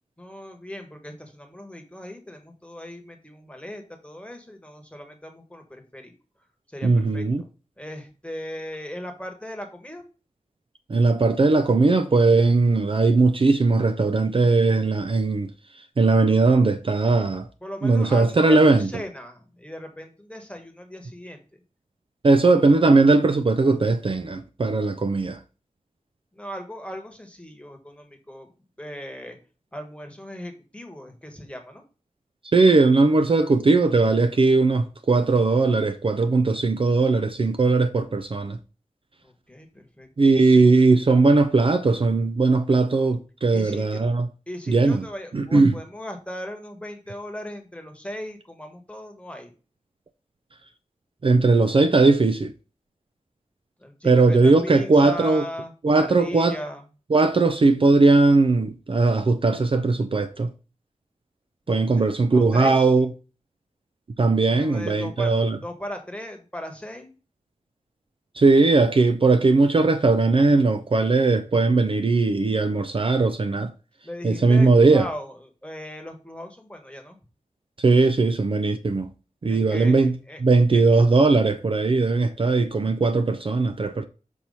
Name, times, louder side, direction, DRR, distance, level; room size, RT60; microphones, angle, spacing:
voice 1, 0.2-6.1 6.7-7.5 7.8-10.0 17.6-21.6 22.4-22.7 26.3-28.5 28.8-29.4 29.7-31.8 39.2-40.8 43.5-44.1 44.5-49.5 53.8-56.8 61.7-62.9 64.4-65.3 65.6-67.1 74.0-77.2 79.5-80.4 80.7-80.8, left 1 dB, 10° left, 1.3 m, -38 dB
voice 2, 6.8-7.4 10.9-15.5 16.0-17.5 17.8-18.9 22.2-25.4 32.5-38.6 40.2-44.3 44.7-45.0 45.3-45.7 51.2-52.5 54.0-55.4 55.8-56.6 57.1-60.5 61.7-63.1 64.2-65.6 68.4-73.7 74.2-75.0 77.8-79.1 79.4-80.1 80.4-84.0, right 3 dB, 40° right, 0.5 m, -19 dB
6.3 x 2.9 x 5.4 m
wide cardioid pair, 80°, 13 cm